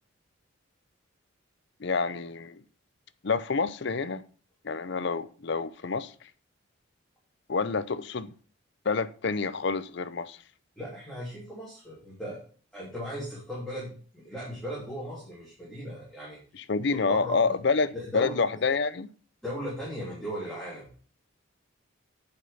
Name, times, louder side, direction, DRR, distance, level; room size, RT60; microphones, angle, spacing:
voice 1, 1.8-2.6 3.2-4.2 4.6-6.1 7.5-8.3 8.8-10.4 16.5-19.1, left 4 dB, 55° left, 0.6 m, -28 dB
voice 2, 10.8-12.4 12.7-16.4 16.9-17.5 17.9-18.4 19.4-21.0, equal, ahead, 2.9 m, -37 dB
9.8 x 5.3 x 5.5 m
head